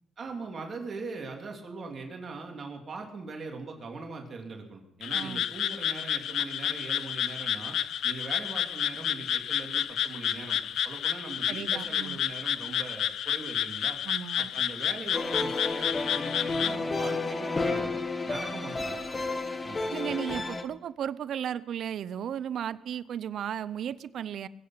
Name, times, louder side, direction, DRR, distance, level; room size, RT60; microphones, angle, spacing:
voice 1, 0.2-7.8 8.0-10.6 10.8-14.0 14.4-17.9 18.2-19.0 19.6-20.1, right 3 dB, 45° right, 2 dB, 2.8 m, -41 dB
Frog, 5.0-16.8, left 10 dB, 70° left, 0.4 m, -30 dB
voice 2, 5.1-5.4 11.5-12.2 14.0-14.5 19.9-24.5, right 9 dB, 65° right, 17 dB, 0.6 m, -35 dB
sound 1, 15.1-20.6, left 3 dB, 25° left, 1.4 m, -31 dB
22.0 x 8.6 x 5.8 m, 0.87 s
cardioid pair, 90°, 0 cm